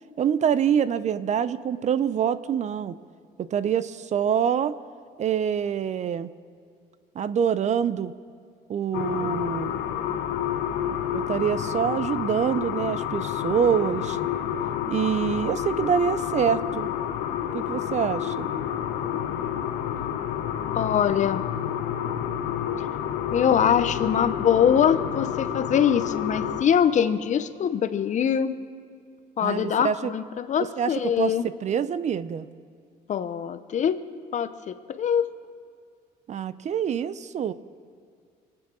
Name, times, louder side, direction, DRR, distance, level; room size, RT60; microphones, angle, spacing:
voice 1, 0.2-3.0 3.4-4.8 5.2-6.3 7.1-8.1 8.7-9.7 11.1-14.2 14.9-16.9 17.5-18.5 29.4-30.1 30.6-31.3 31.6-32.5 36.3-37.5, right 8 dB, 45° right, 15 dB, 0.6 m, -25 dB
sound 1, 8.9-26.6, left 9 dB, 90° left, 1.0 m, -29 dB
voice 2, 20.7-21.4 23.3-28.6 29.4-31.4 33.1-34.0 34.3-35.3, left 8 dB, 45° left, 12 dB, 0.8 m, -23 dB
24.0 x 9.0 x 6.2 m, 2.2 s
cardioid pair, 110°, 17 cm